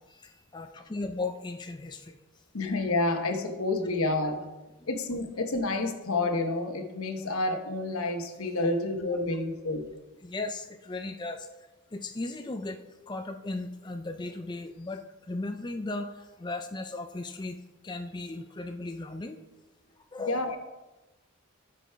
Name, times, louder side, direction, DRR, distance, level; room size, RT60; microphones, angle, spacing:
voice 1, 0.0-2.2 4.8-4.9 9.3-9.4 10.2-11.5 11.9-12.8 13.1-19.4 20.1-20.5, left 2 dB, 20° left, 5 dB, 0.4 m, -36 dB
voice 2, 2.5-4.4 4.9-9.9 20.3-20.6, left 2 dB, 80° left, 6 dB, 1.1 m, -29 dB
12.5 x 5.2 x 4.5 m, 1.1 s
head